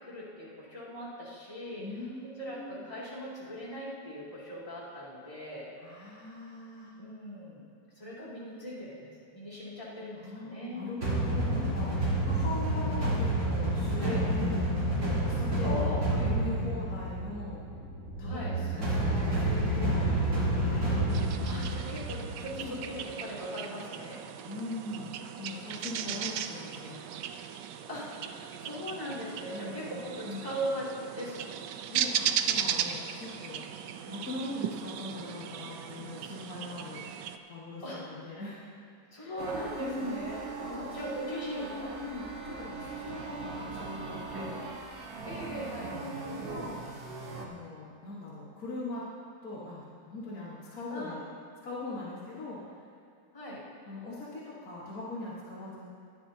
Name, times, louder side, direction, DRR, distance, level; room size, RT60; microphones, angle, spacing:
voice 1, 0.0-1.8 2.4-5.7 7.0-7.7 7.9-10.9 12.3-12.6 14.0-14.2 15.6-16.3 18.2-18.5 21.4-24.2 26.0-26.1 27.9-28.2 28.6-31.5 37.8-38.0 39.1-41.9 44.3-44.5 45.3-45.9 50.9-51.2 53.3-53.6, equal, 20° left, -8 dB, 2.8 m, -39 dB
voice 2, 1.8-2.9 5.8-6.9 10.2-14.7 15.2-15.8 16.2-17.6 18.2-20.7 22.6-22.8 24.5-27.1 29.5-30.5 31.9-33.7 34.1-38.7 39.2-39.4 39.8-40.2 40.6-44.6 45.8-46.9 47.4-49.1 49.4-51.2 51.6-52.6 53.9-55.9, left 2 dB, 60° left, -7 dB, 2.1 m, -41 dB
sound 1, 11.0-22.9, right 1 dB, 45° right, 4.2 m, -29 dB
sound 2, 21.1-37.4, right 9 dB, 85° right, 1.2 m, -37 dB
sound 3, 39.4-47.5, right 4 dB, 60° right, 1.6 m, -41 dB
19.5 x 12.5 x 2.8 m, 2.5 s
omnidirectional pair, 1.8 m